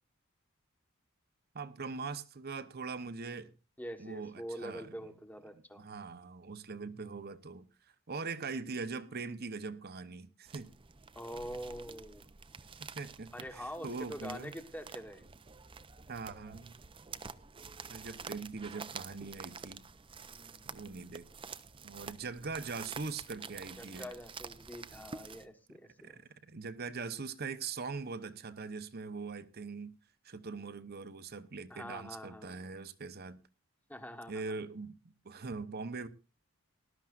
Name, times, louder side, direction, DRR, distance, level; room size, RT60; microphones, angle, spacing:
voice 1, 1.5-3.5 4.0-4.9 5.5-7.7 8.1-10.7 12.8-13.3 13.6-14.5 16.1-16.8 17.9-19.8 20.7-21.3 21.8-24.1 26.0-26.2 26.5-29.9 30.2-33.4 34.3-35.0 35.2-36.1, right 4 dB, 45° right, 0.9 m, -41 dB
voice 2, 3.8-5.8 11.1-12.3 13.3-15.2 20.3-20.7 23.8-26.2 31.7-32.7 33.9-34.4, equal, 10° left, 1.3 m, -45 dB
sound 1, 10.5-25.5, right 5 dB, 25° right, 0.6 m, -48 dB
19.0 x 12.0 x 2.5 m
head